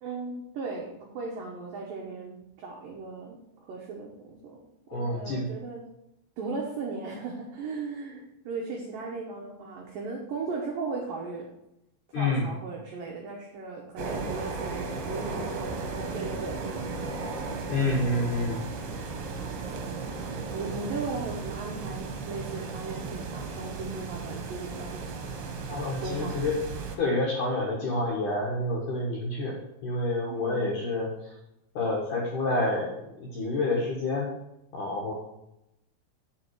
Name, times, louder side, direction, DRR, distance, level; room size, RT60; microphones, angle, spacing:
voice 1, 0.0-4.6 4.9-5.8 6.4-11.5 12.2-16.8 20.3-25.2 26.0-26.5 30.3-30.7, right 4 dB, 85° right, -1 dB, 2.0 m, -37 dB
voice 2, 4.9-5.5 12.1-12.5 17.7-18.6 25.7-26.6 27.0-31.3 31.8-34.3 34.7-35.1, left 2 dB, 75° left, -2 dB, 1.9 m, -28 dB
sound 1, 14.0-27.0, right 4 dB, 70° right, 2.6 m, -35 dB
7.7 x 7.4 x 4.7 m, 0.87 s
omnidirectional pair, 5.6 m